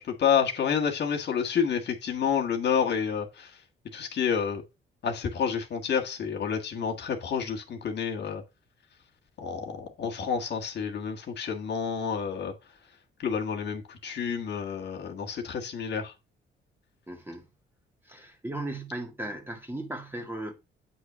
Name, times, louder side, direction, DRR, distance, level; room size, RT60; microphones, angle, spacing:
voice 1, 0.0-3.5 3.9-4.6 5.0-8.4 9.4-12.5 13.2-16.1, left 7 dB, 60° left, 1.6 m, -29 dB
voice 2, 17.1-17.5 18.1-20.5, right 1 dB, 10° right, 1.7 m, -36 dB
8.0 x 3.1 x 6.2 m
cardioid pair, 90°, 20 cm